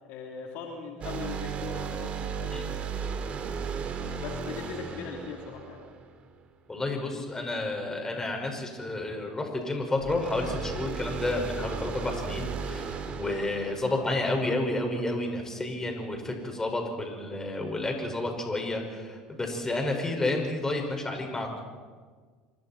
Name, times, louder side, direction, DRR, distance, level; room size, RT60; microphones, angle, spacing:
voice 1, 0.1-2.6 4.2-5.8 13.9-14.1, left 5 dB, 65° left, 0 dB, 3.8 m, -39 dB
sound 1, 1.0-6.5 10.0-14.7, right 5 dB, 45° right, 2.7 m, -35 dB
voice 2, 6.7-21.6, left 2 dB, 15° left, 2 dB, 5.8 m, -31 dB
27.0 x 23.5 x 4.5 m, 1.5 s
hypercardioid pair, 75°, 3 cm